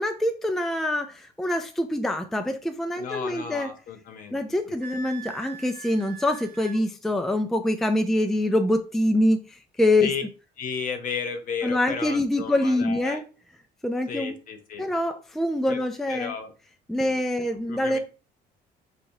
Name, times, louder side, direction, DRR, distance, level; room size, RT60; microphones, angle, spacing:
voice 1, 0.0-3.7 4.3-10.1 11.6-13.2 13.8-14.4 14.8-16.3 16.9-18.0, left 1 dB, ahead, 6 dB, 0.4 m, -25 dB
voice 2, 3.0-4.4 4.9-5.0 10.0-10.2 10.6-13.2 14.1-14.9 15.7-15.8 16.1-16.5 17.0-17.2 17.7-18.0, left 6 dB, 55° left, 5 dB, 0.9 m, -34 dB
Wind instrument woodwind instrument, 4.8-6.8, right 5 dB, 65° right, 0.7 m, -42 dB
4.5 x 2.9 x 2.7 m, 0.34 s
cardioid pair, 110°, 17 cm